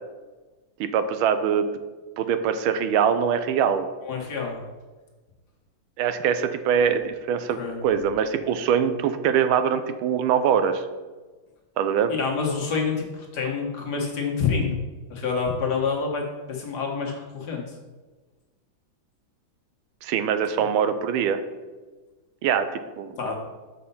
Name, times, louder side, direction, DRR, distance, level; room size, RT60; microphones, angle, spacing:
voice 1, 0.8-1.7 2.2-3.9 6.0-10.8 11.8-12.1 20.0-21.4 22.4-23.3, right 7 dB, 85° right, 10 dB, 1.4 m, -23 dB
voice 2, 4.0-4.6 7.6-7.8 12.1-14.7 15.1-17.6 23.2-23.4, left 5 dB, 55° left, -1 dB, 1.7 m, -27 dB
6.6 x 5.4 x 5.4 m, 1.3 s
omnidirectional pair, 2.3 m